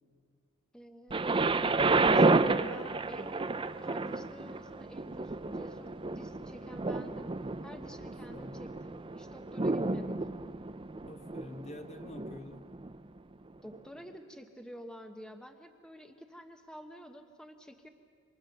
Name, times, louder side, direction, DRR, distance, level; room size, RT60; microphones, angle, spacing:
voice 1, 0.7-1.3 2.0-3.5 3.8-7.3 7.6-10.2 13.6-17.9, equal, 5° left, 5 dB, 1.1 m, -49 dB
Thunder, 1.1-13.0 13.7-13.8, right 3 dB, 25° right, 0.6 m, -31 dB
voice 2, 8.0-8.6 11.0-12.6, left 1 dB, 30° left, 6 dB, 1.2 m, -47 dB
27.5 x 25.0 x 6.6 m, 2.1 s
head